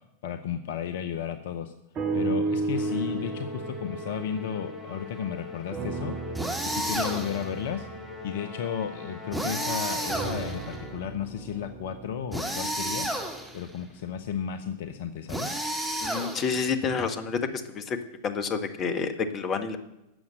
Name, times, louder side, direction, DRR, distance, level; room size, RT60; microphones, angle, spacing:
voice 1, 0.2-1.7 2.1-6.2 6.6-7.9 8.2-13.1 13.5-15.5, left 8 dB, 55° left, 10 dB, 0.7 m, -33 dB
sound 1, 1.9-5.3 5.7-9.4 10.1-14.3 15.0-15.1, right 3 dB, 30° right, 1.5 m, -35 dB
Musical instrument, 2.7-11.2, left 3 dB, 10° left, 3.9 m, -42 dB
sound 2, 6.3-7.5 9.3-10.8 12.3-13.6 15.3-16.7, right 1 dB, 5° right, 2.3 m, -31 dB
voice 2, 16.0-17.4 17.7-18.0 18.2-19.8, left 5 dB, 30° left, 7 dB, 1.4 m, -29 dB
12.5 x 7.2 x 7.9 m, 0.92 s
figure-of-eight pair, 90°, 0 cm